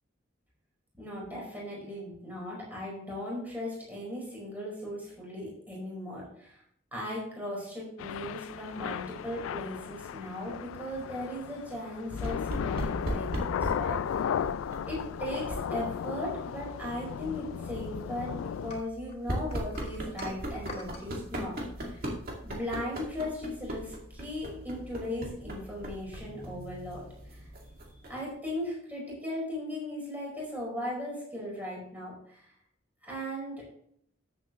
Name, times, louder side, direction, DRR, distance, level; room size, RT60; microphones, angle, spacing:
voice 1, 0.9-6.6 6.9-14.4 14.9-22.1 22.4-27.4 28.1-32.5 33.0-33.7, left 1 dB, 10° right, -4 dB, 4.8 m, -38 dB
Thunder / Rain, 8.0-18.8, left 8 dB, 90° left, 0.3 m, -35 dB
sound 1, 12.2-28.3, equal, 50° right, 2.2 m, -39 dB
sound 2, 18.7-21.1, left 2 dB, 35° left, 2.5 m, -46 dB
13.5 x 7.9 x 3.1 m, 0.68 s
head